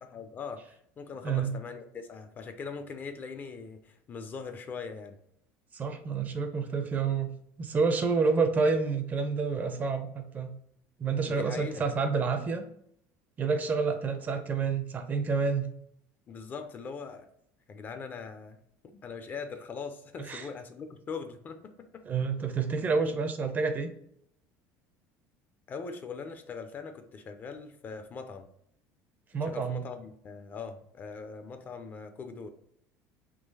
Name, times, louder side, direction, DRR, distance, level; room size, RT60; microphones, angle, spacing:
voice 1, 0.0-5.2 11.2-11.9 16.3-17.3 17.7-18.6 18.8-22.1 23.0-23.1 25.7-28.5 29.4-32.5, left 5 dB, 30° left, 8 dB, 0.4 m, -41 dB
voice 2, 1.2-1.5 5.7-7.3 7.6-10.5 11.0-12.7 13.4-15.7 20.3-20.5 22.1-23.9 29.3-29.8, right 5 dB, 25° right, 8 dB, 0.5 m, -28 dB
3.7 x 2.8 x 2.7 m, 0.70 s
cardioid pair, 140°, 6 cm